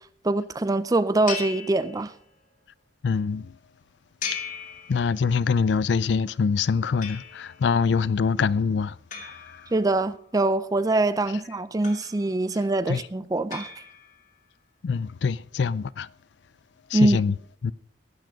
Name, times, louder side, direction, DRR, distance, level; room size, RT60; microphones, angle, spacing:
voice 1, 0.2-2.1 9.7-13.8 16.9-17.2, right 2 dB, 20° right, 0.4 m, -24 dB
sound 1, 1.3-2.5 4.2-5.5 7.0-7.7 9.1-10.3 11.8-12.5 13.5-14.4, left 7 dB, 45° left, 2.1 m, -38 dB
voice 2, 3.0-3.5 4.9-9.0 9.2-9.4 12.9-13.0 14.8-16.1 16.9-17.3 17.6-17.7, left 5 dB, 65° left, 0.4 m, -24 dB
12.0 x 9.2 x 5.1 m
head